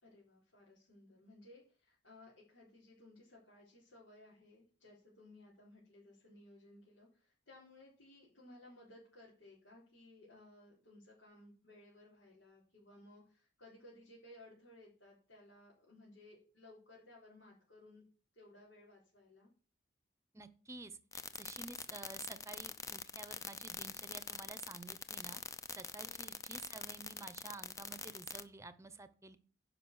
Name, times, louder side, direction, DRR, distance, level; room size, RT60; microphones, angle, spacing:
voice 1, 0.0-18.0 18.4-19.5 21.5-21.7 26.0-26.3, left 1 dB, 80° left, -7 dB, 4.2 m, -59 dB
voice 2, 20.3-25.4 25.7-29.4, right 3 dB, 15° right, 13 dB, 0.8 m, -51 dB
sound 1, 21.1-28.4, left 5 dB, 15° left, 0.6 m, -43 dB
11.0 x 5.4 x 6.3 m, 0.39 s
head